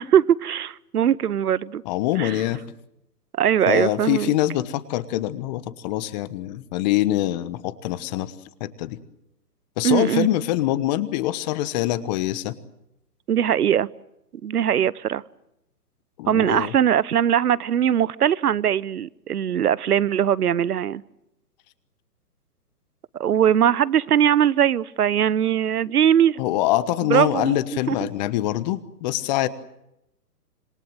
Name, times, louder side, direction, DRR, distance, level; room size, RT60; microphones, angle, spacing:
voice 1, 0.0-1.8 2.2-2.3 3.4-4.3 9.8-10.3 13.3-13.9 14.4-15.2 16.3-21.0 23.2-26.4 27.1-27.6 27.9-28.1, right 9 dB, 70° right, 21 dB, 1.0 m, -20 dB
voice 2, 1.8-2.6 3.7-8.3 8.6-9.0 9.8-12.5 16.2-16.7 26.4-29.5, left 14 dB, 30° left, 15 dB, 1.2 m, -24 dB
27.0 x 21.0 x 7.8 m, 0.85 s
hypercardioid pair, 135°, 47 cm